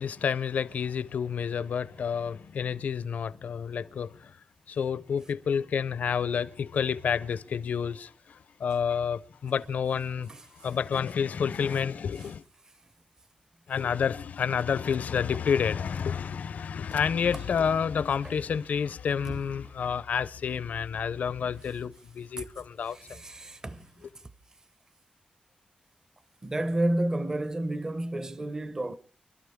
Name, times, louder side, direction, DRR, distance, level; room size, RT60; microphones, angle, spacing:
voice 1, 0.0-4.4 4.7-12.4 13.7-23.2, left 7 dB, 75° left, 0.6 m, -29 dB
voice 2, 22.9-23.9 26.4-29.0, right 1 dB, 25° right, 0.8 m, -31 dB
25.5 x 12.5 x 3.6 m
wide cardioid pair, 170°, 3 cm